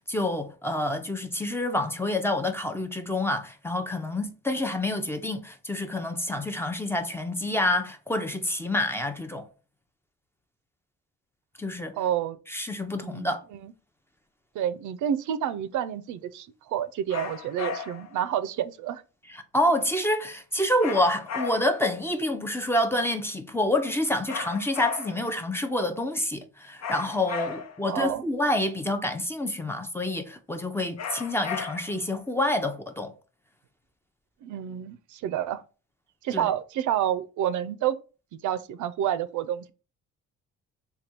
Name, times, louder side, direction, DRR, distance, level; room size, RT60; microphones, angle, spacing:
voice 1, 0.0-9.5 11.6-12.0 12.5-13.4 19.3-33.1 36.3-36.5, left 1 dB, 10° left, 0.5 m, -28 dB
voice 2, 12.0-12.4 13.0-13.7 14.5-19.0 27.4-27.5 27.8-28.2 34.4-35.6 36.2-38.0 38.3-39.7, right 10 dB, 75° right, 0.5 m, -29 dB
sound 1, 17.1-18.1 20.8-21.9 24.3-25.3 26.8-27.9 31.0-32.1, left 6 dB, 60° left, 0.7 m, -35 dB
3.4 x 2.3 x 4.3 m
cardioid pair, 90°, 30 cm